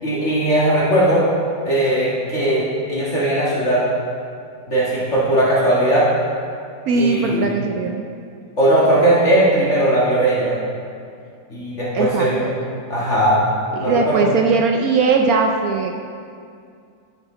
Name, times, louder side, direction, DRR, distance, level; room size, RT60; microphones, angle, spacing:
voice 1, 0.0-1.3 1.6-3.8 4.7-6.1 6.9-7.5 8.6-10.5 11.5-12.5 12.9-13.5 13.8-14.3, right 1 dB, 40° left, -8 dB, 1.9 m, -18 dB
voice 2, 6.9-8.0 11.9-12.3 13.8-15.9, right 4 dB, 75° right, 3 dB, 0.8 m, -19 dB
10.0 x 6.4 x 3.7 m, 2.3 s
omnidirectional pair, 2.0 m